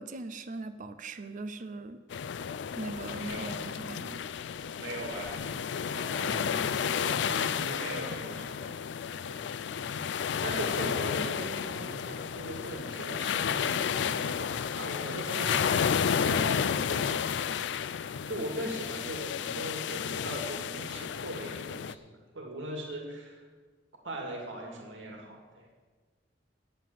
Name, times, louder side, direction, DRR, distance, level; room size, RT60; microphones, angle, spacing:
voice 1, 0.0-2.0 2.8-4.3, right 2 dB, 45° right, 9 dB, 0.5 m, -40 dB
sound 1, 2.1-21.9, left 7 dB, 65° left, 0.4 m, -32 dB
voice 2, 3.1-3.7 4.8-5.5 5.8-8.8 9.2-9.4 10.4-15.9 16.2-17.4 18.3-22.1 22.3-23.4 24.0-25.7, right 1 dB, 80° right, 0 dB, 2.1 m, -40 dB
9.2 x 7.8 x 7.4 m, 1.4 s
head